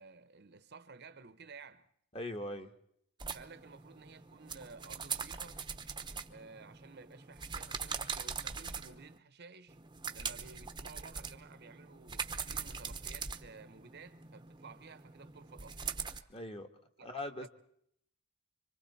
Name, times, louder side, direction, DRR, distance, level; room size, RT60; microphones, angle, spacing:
voice 1, 0.0-1.9 3.3-5.6 6.3-9.8 10.1-15.9 17.0-17.1 17.4-17.5, right 4 dB, 50° right, 1.0 m, -54 dB
voice 2, 2.1-2.7 16.3-16.7 17.0-17.5, left 1 dB, 25° left, 1.6 m, -40 dB
sound 1, 3.2-9.2 9.7-16.2, right 6 dB, 20° right, 0.9 m, -42 dB
26.5 x 25.5 x 4.2 m
head